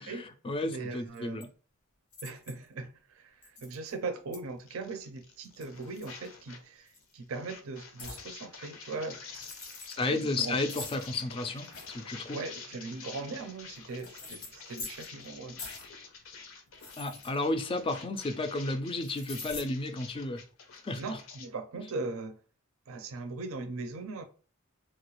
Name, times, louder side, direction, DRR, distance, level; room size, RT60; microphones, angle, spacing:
voice 1, 0.0-1.5 9.9-12.4 17.0-20.4 20.8-21.2, left 2 dB, 25° left, 0.4 m, -33 dB
voice 2, 0.6-1.4 2.2-9.4 10.0-10.5 12.3-15.6 21.0-22.4 22.9-24.2, right 3 dB, 70° right, 0.5 m, -39 dB
sound 1, 1.1-1.4 2.1-2.7 3.4-3.9 4.3-4.4 5.4-6.5 6.9-7.1 8.0-8.3 9.2-10.0 10.7-11.9 13.0-15.3 15.6-15.9 16.7-18.0 19.0-19.6, left 3 dB, 90° left, 1.0 m, -45 dB
sound 2, 4.6-6.7 6.9-21.5, left 5 dB, 70° left, 0.6 m, -48 dB
3.0 x 2.4 x 3.0 m
head